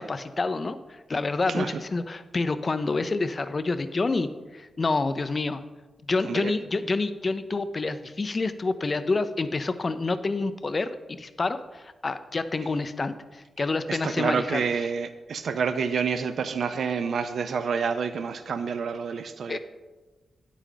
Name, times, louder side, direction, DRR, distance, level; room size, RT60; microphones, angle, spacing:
voice 1, 0.0-5.6 6.0-14.9 19.5-19.6, left 3 dB, 30° left, 12 dB, 0.5 m, -28 dB
voice 2, 1.5-1.8 6.2-6.5 13.9-19.6, right 6 dB, 65° right, 10 dB, 0.4 m, -28 dB
10.0 x 8.2 x 3.8 m, 1.2 s
wide cardioid pair, 165°, 0 cm